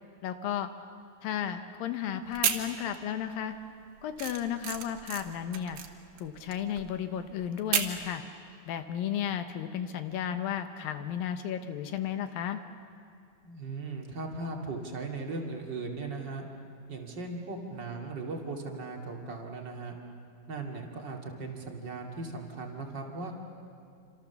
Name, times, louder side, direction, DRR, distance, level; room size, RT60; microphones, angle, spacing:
voice 1, 0.2-0.7 1.2-3.5 4.0-5.8 6.2-8.2 8.7-12.6, left 9 dB, 75° left, 9 dB, 2.6 m, -33 dB
sound 1, 2.3-3.2 3.5-8.1, right 9 dB, 70° right, 3.1 m, -33 dB
voice 2, 13.4-16.5 16.9-19.9 20.5-23.3, right 3 dB, 35° right, 1 dB, 2.6 m, -38 dB
28.0 x 26.5 x 7.1 m, 2.4 s
omnidirectional pair, 4.3 m